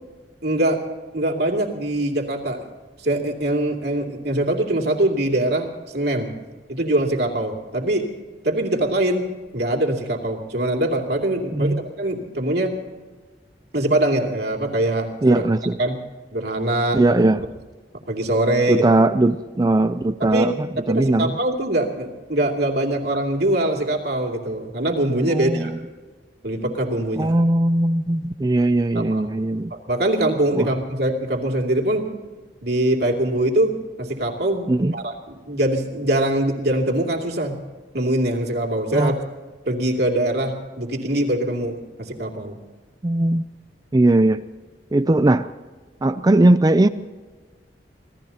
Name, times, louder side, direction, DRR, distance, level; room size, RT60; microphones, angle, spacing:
voice 1, 0.4-0.8 1.1-2.6 3.0-6.3 6.7-8.1 8.4-9.3 9.5-12.7 13.7-15.5 15.8-16.0 16.3-17.0 18.1-18.9 20.2-20.5 20.9-25.8 26.4-27.4 28.9-29.3 29.9-32.1 32.6-33.7 34.0-37.6 37.9-39.2 39.7-42.6, right 1 dB, 65° right, 1 dB, 2.7 m, -23 dB
voice 2, 11.5-11.8 15.2-15.8 16.9-17.4 18.7-21.4 25.3-25.8 27.2-29.7 30.5-30.7 34.7-34.9 38.9-39.1 43.0-43.4 43.9-44.4 44.9-45.5 46.0-46.9, right 2 dB, 20° right, 11 dB, 0.4 m, -19 dB
26.5 x 18.0 x 2.9 m, 1.3 s
head